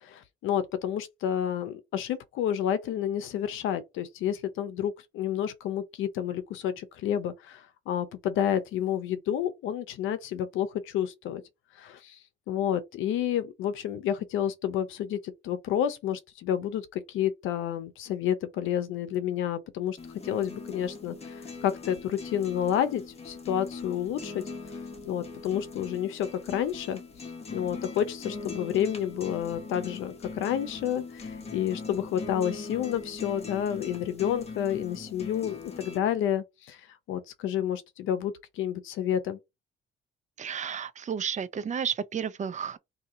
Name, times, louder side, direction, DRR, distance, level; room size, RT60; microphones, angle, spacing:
voice 1, 0.0-11.4 11.8-12.2 12.5-20.0 20.2-24.4 25.0-27.0 27.5-36.8 37.1-39.4, left 10 dB, 85° left, 0.7 m, -30 dB
sound 1, 20.0-36.0, left 4 dB, 30° left, 1.0 m, -41 dB
voice 2, 40.4-42.8, right 7 dB, 35° right, 0.5 m, -32 dB
2.8 x 2.8 x 3.7 m
cardioid pair, 90°, 20 cm